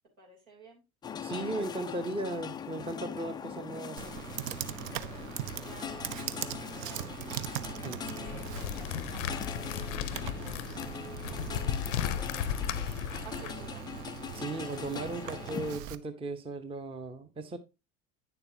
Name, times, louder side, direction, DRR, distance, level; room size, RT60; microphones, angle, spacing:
voice 1, 0.2-0.8 5.6-7.2 8.1-10.8 11.9-13.8 14.5-15.5, right 3 dB, 75° right, 3.3 m, -53 dB
sound 1, 1.0-15.8, left 7 dB, 10° left, 0.3 m, -42 dB
voice 2, 1.2-4.1 7.8-8.0 14.3-17.6, right 2 dB, 15° right, 0.8 m, -37 dB
Computer keyboard, 4.0-16.0, right 12 dB, 50° right, 0.7 m, -41 dB
sound 2, 8.3-13.5, left 10 dB, 65° left, 0.7 m, -35 dB
9.1 x 6.9 x 2.7 m
figure-of-eight pair, 70°, 41 cm